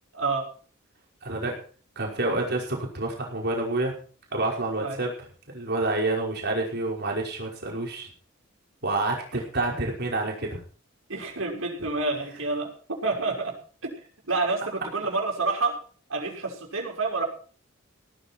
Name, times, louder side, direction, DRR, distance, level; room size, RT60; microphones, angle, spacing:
voice 1, 0.1-0.5 4.8-5.0 11.1-12.7 13.0-13.5 13.8-13.9 14.3-15.8 16.1-17.3, right 3 dB, 80° right, 0 dB, 6.1 m, -28 dB
voice 2, 1.2-1.6 2.0-4.0 4.3-5.2 5.5-8.1 8.8-10.6, right 2 dB, 55° right, -1 dB, 5.4 m, -28 dB
18.0 x 13.5 x 4.6 m, 0.42 s
head